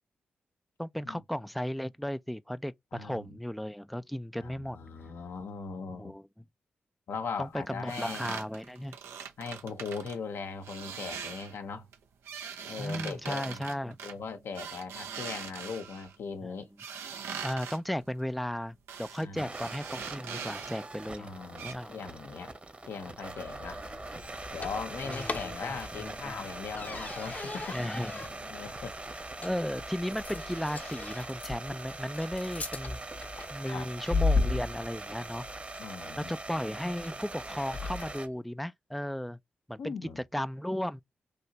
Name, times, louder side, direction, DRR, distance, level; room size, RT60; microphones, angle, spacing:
voice 1, 0.8-4.8 5.9-6.2 7.4-9.0 12.8-14.0 17.4-21.3 21.6-21.9 25.0-26.4 27.7-28.3 29.4-33.0 33.5-35.4 36.2-39.4 39.7-39.9 40.3-41.0, equal, ahead, 0.4 m, -35 dB
voice 2, 2.9-3.4 4.4-6.1 7.1-8.3 9.4-11.9 12.7-13.6 14.0-16.7 19.2-19.5 21.1-22.5 22.8-23.8 24.5-27.9 28.5-29.0 33.6-33.9 35.8-36.3 39.8-40.2, left 5 dB, 70° left, 0.7 m, -39 dB
sound 1, 7.9-10.2 10.6-11.6 11.9-16.1 16.8-17.8 18.9-19.2 19.5-20.9 21.2-21.3 21.6-21.7, right 7 dB, 80° right, 0.6 m, -41 dB
sound 2, 19.4-38.3, right 2 dB, 30° right, 1.0 m, -43 dB
sound 3, 23.2-38.3, left 3 dB, 40° left, 0.7 m, -37 dB
3.2 x 2.8 x 2.7 m
supercardioid pair, 40°, 4 cm